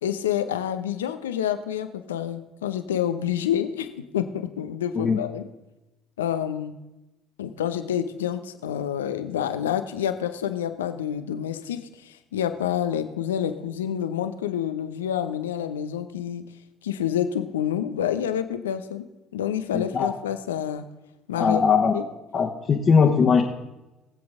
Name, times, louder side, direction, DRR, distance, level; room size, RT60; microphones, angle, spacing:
voice 1, 0.0-3.9 4.1-5.4 6.2-6.7 7.4-16.4 16.8-19.1 19.3-20.9 21.3-21.6 21.9-22.0, left 10 dB, 85° left, 10 dB, 0.7 m, -28 dB
voice 2, 19.7-20.1 21.4-21.9 22.3-23.4, left 6 dB, 40° left, -1 dB, 1.4 m, -20 dB
20.5 x 7.8 x 3.7 m, 1.0 s
hypercardioid pair, 60°, 0 cm